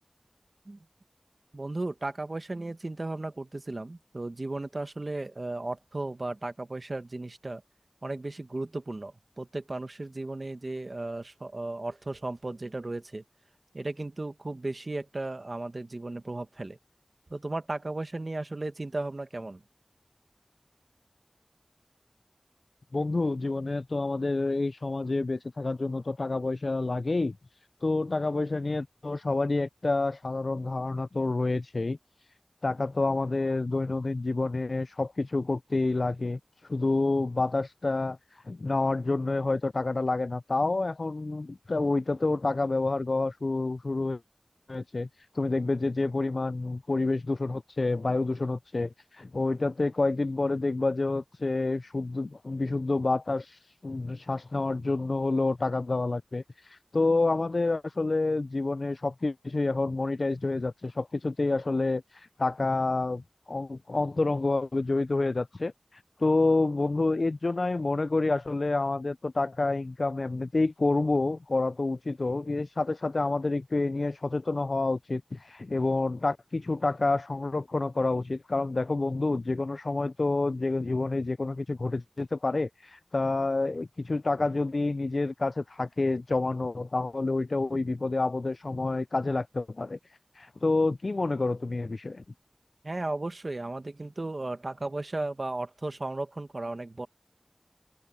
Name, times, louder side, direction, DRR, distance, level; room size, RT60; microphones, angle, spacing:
voice 1, 1.5-7.6 8.0-13.2 13.7-16.8 17.3-19.6 92.8-97.1, right 2 dB, 65° right, 1.4 m, -35 dB
voice 2, 22.9-27.4 27.8-32.0 32.6-36.4 36.7-38.2 38.5-44.2 44.7-45.1 45.4-53.5 53.8-56.4 56.9-62.0 62.4-65.7 66.2-90.0 90.4-92.2, left 3 dB, 90° left, 0.3 m, -28 dB
wide cardioid pair, 50°, 0 cm